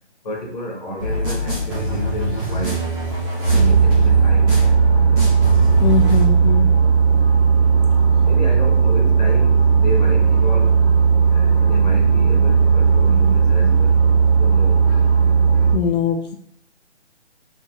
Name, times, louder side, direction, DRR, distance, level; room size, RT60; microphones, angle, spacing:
voice 1, 0.2-2.8 3.4-4.6 8.3-10.8 11.3-14.0 14.4-14.8, right 1 dB, 35° left, -2 dB, 0.9 m, -29 dB
sound 1, 1.0-6.2, equal, ahead, 0.5 m, -24 dB
sound 2, 3.4-15.8, right 6 dB, 55° left, 1.3 m, -15 dB
voice 2, 5.8-6.7 15.7-16.4, left 6 dB, 85° left, 3 dB, 0.6 m, -21 dB
3.5 x 2.6 x 2.3 m, 0.67 s
hypercardioid pair, 155°, 35 cm